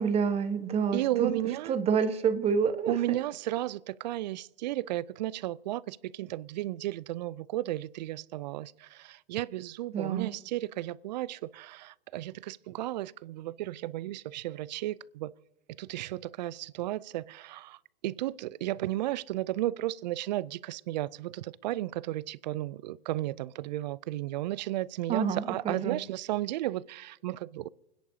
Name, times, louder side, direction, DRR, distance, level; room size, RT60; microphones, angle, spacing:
voice 1, 0.0-1.3 1.6-2.9 9.9-10.3 25.1-26.0, right 6 dB, 20° right, 1.1 m, -28 dB
voice 2, 0.9-1.7 2.9-15.3 15.8-27.7, right 15 dB, 50° right, 0.4 m, -34 dB
29.0 x 10.5 x 2.8 m
hypercardioid pair, 120°, 29 cm